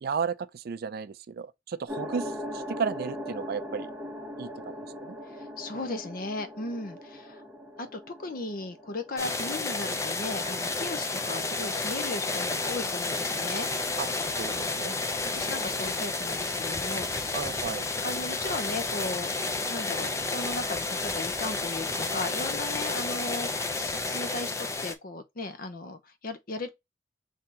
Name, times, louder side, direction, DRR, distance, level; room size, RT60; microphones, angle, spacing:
voice 1, 0.0-3.9 4.4-4.7 5.0-5.2 14.0-14.1 14.4-14.9 17.3-17.8, right 6 dB, 50° right, 0.4 m, -33 dB
sound 1, 1.9-10.6, equal, 10° right, 0.9 m, -40 dB
voice 2, 5.3-7.4 7.8-13.7 15.3-17.5 18.0-19.3 19.7-26.7, left 2 dB, 50° left, 0.7 m, -36 dB
sound 2, 9.2-24.9, left 3 dB, 15° left, 0.5 m, -31 dB
3.8 x 2.8 x 4.0 m
head